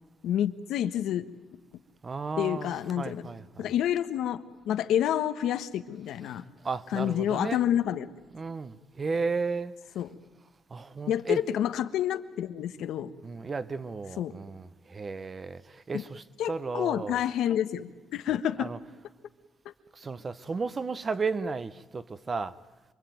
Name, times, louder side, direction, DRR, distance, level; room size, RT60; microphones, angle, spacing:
voice 1, 0.2-1.3 2.4-3.3 3.6-6.4 6.9-8.1 9.9-10.1 11.1-13.1 14.2-14.3 15.9-16.0 16.4-18.7 19.6-19.7, left 10 dB, 75° left, 1.3 m, -29 dB
voice 2, 2.0-3.7 6.6-7.6 8.3-9.7 10.7-11.4 13.2-17.2 18.3-18.8 19.9-22.6, right 4 dB, 25° right, 0.8 m, -34 dB
27.0 x 23.0 x 9.3 m
cardioid pair, 165°, 0 cm